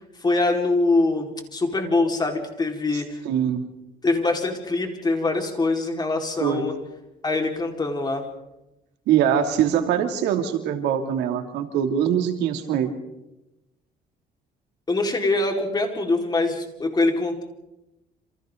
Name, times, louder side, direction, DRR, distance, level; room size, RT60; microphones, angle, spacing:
voice 1, 0.2-3.2 4.0-6.7 7.2-8.2 14.9-17.4, left 2 dB, 25° left, 2 dB, 4.7 m, -23 dB
voice 2, 3.2-3.7 6.4-6.7 9.1-12.9, right 9 dB, 85° right, 5 dB, 3.0 m, -23 dB
28.5 x 27.5 x 4.0 m, 0.92 s
cardioid pair, 110°, 17 cm